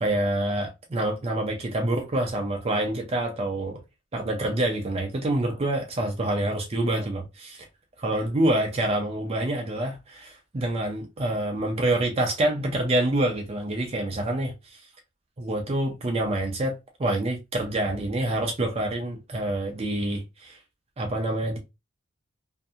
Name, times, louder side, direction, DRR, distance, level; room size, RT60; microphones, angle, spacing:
voice 1, 0.0-3.8 4.1-7.7 8.0-14.8 15.4-20.6 21.0-21.6, right 1 dB, 30° right, 0.5 m, -27 dB
2.7 x 2.5 x 2.4 m
head